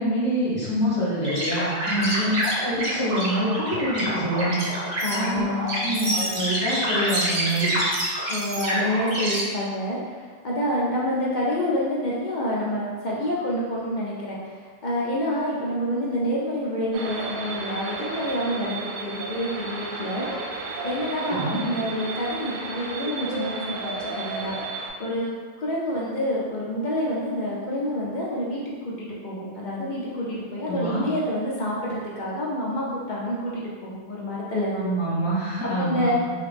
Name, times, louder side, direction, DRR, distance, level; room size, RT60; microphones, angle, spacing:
voice 1, 0.0-4.6 5.1-5.4 5.8-7.7 21.3-21.6 30.6-31.0 34.7-36.1, equal, 30° left, -10 dB, 1.1 m, -26 dB
sound 1, 1.2-9.4, right 1 dB, 60° right, 0.9 m, -27 dB
voice 2, 5.0-6.0 8.3-20.3 20.8-24.5 25.0-34.9 35.6-36.1, equal, 55° left, -5 dB, 0.6 m, -28 dB
sound 2, 16.9-24.9, right 3 dB, 90° right, 0.9 m, -33 dB
2.8 x 2.4 x 3.3 m, 1.5 s
omnidirectional pair, 1.1 m